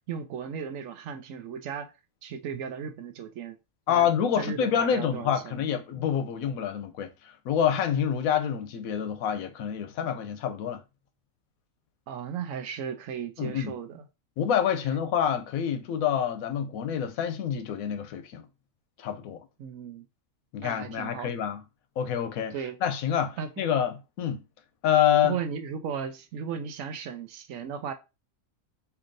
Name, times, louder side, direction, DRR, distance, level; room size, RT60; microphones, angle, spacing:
voice 1, 0.1-1.9 2.2-3.6 3.9-4.1 4.4-5.7 6.4-6.5 12.1-14.0 19.6-20.0 20.6-21.3 22.5-22.8 23.4-23.5 25.2-27.9, right 7 dB, 75° right, 1.0 m, -36 dB
voice 2, 3.9-10.8 13.4-13.8 14.4-18.4 19.0-19.4 20.5-21.6 22.0-22.5 22.8-24.4 24.8-25.4, left 9 dB, 85° left, 1.0 m, -27 dB
4.5 x 2.8 x 2.6 m
omnidirectional pair, 1.5 m